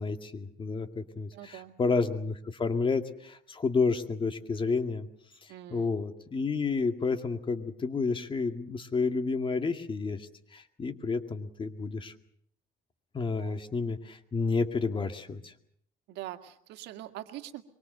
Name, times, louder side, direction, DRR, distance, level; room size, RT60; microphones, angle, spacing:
voice 1, 0.0-5.1 5.7-12.1 13.1-15.5, left 4 dB, 30° left, 7 dB, 2.2 m, -30 dB
voice 2, 1.3-1.7 5.5-5.9 13.4-13.6 16.1-17.6, right 14 dB, 85° right, 7 dB, 1.9 m, -43 dB
24.0 x 23.5 x 6.8 m, 0.67 s
cardioid pair, 110°, 17 cm